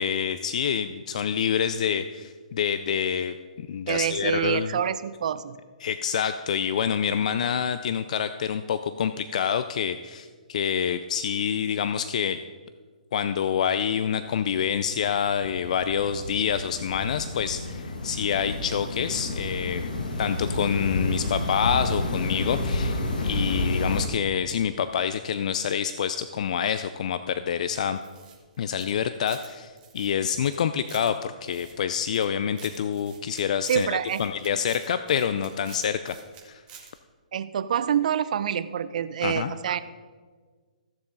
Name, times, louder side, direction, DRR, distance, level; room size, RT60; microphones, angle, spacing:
voice 1, 0.0-4.7 5.8-12.4 13.1-19.8 20.2-28.0 28.6-33.9 34.2-36.2 36.5-36.6 39.2-39.5, left 8 dB, 60° left, 11 dB, 0.4 m, -27 dB
voice 2, 3.9-5.6 33.7-34.2 37.3-39.8, right 9 dB, 60° right, 14 dB, 0.6 m, -26 dB
sound 1, 14.2-24.1, left 2 dB, 80° left, 1.7 m, -30 dB
sound 2, 28.0-29.5 29.8-31.1 31.5-32.3 32.5-36.4 36.7-36.9, right 7 dB, 25° right, 1.9 m, -48 dB
14.5 x 7.1 x 3.9 m, 1.5 s
hypercardioid pair, 145°, 4 cm